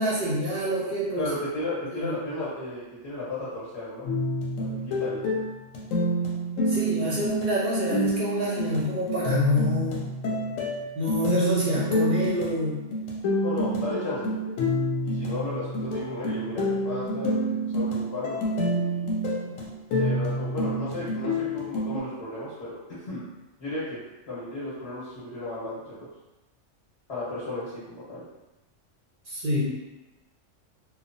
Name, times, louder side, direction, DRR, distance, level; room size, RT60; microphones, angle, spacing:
voice 1, 0.0-1.3 1.9-2.2 6.7-10.0 11.0-12.8 29.3-29.6, left 1 dB, 55° right, -6 dB, 0.6 m, -27 dB
voice 2, 1.2-4.1 4.6-5.3 13.4-14.4 15.0-19.0 19.9-22.8 23.1-23.2 23.6-24.0 24.3-26.1 27.1-28.2, left 2 dB, 55° left, -10 dB, 1.3 m, -34 dB
sound 1, 4.1-22.0, equal, 85° left, 1.0 m, -28 dB
3.1 x 2.1 x 2.6 m, 1.0 s
omnidirectional pair, 1.3 m